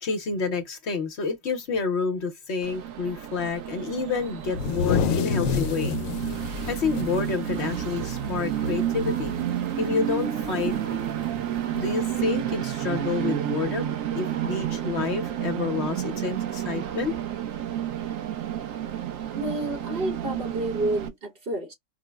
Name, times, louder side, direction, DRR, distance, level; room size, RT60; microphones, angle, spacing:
voice 1, 0.0-6.0 6.7-9.3 9.8-11.0 11.7-17.1, left 5 dB, 60° left, 1.0 m, -29 dB
Train, 2.6-21.1, right 10 dB, 80° right, 1.1 m, -30 dB
sound 1, 4.5-8.2 8.5-8.7 9.0-9.5 10.6-10.7 11.8-11.9, left 6 dB, 85° left, 1.0 m, -28 dB
voice 2, 19.3-21.7, right 1 dB, 50° right, 1.1 m, -29 dB
4.5 x 2.0 x 2.2 m
omnidirectional pair, 1.4 m